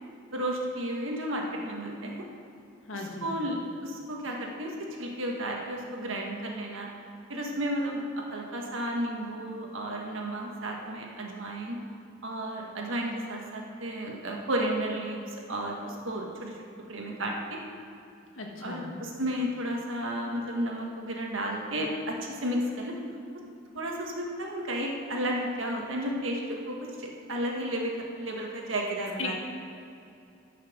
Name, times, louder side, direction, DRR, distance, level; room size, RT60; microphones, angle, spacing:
voice 1, 0.3-2.2 2.9-6.9 7.3-11.8 12.2-15.2 15.5-16.6 16.9-17.6 18.6-22.9 23.7-29.4, right 1 dB, 70° right, 0 dB, 1.6 m, -33 dB
voice 2, 2.9-3.3 18.3-18.9 29.2-29.4, left 3 dB, 75° left, 0 dB, 1.7 m, -36 dB
12.5 x 5.8 x 6.2 m, 2.7 s
head